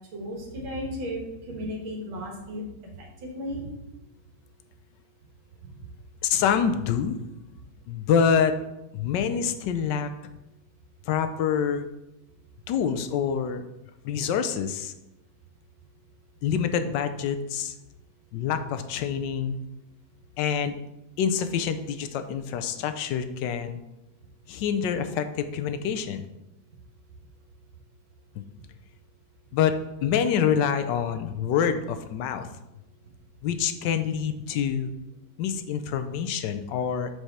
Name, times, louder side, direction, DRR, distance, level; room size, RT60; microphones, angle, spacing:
voice 1, 0.1-2.6 3.2-3.7, equal, 90° right, 1 dB, 2.3 m, -34 dB
voice 2, 6.2-7.2 7.9-8.6 8.9-10.1 11.1-11.9 12.7-13.6 14.0-14.9 16.4-17.7 18.3-19.6 20.4-20.8 21.2-23.8 24.5-26.3 28.3-28.4 29.5-32.5 33.4-34.9 35.4-37.1, left 7 dB, 70° left, 9 dB, 1.2 m, -26 dB
6.7 x 4.9 x 4.2 m, 0.91 s
omnidirectional pair, 2.1 m